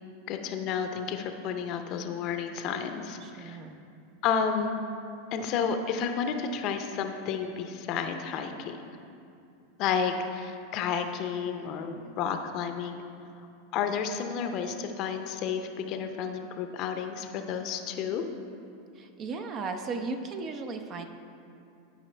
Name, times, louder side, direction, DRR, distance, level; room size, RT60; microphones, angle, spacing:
voice 1, 0.3-3.6 4.2-4.8 5.3-8.9 9.8-13.0 13.7-18.2, left 6 dB, 50° left, 6 dB, 0.7 m, -31 dB
voice 2, 3.2-3.8 19.0-21.1, right 4 dB, 40° right, 6 dB, 0.7 m, -36 dB
12.0 x 5.1 x 3.3 m, 2.6 s
hypercardioid pair, 100°, 0 cm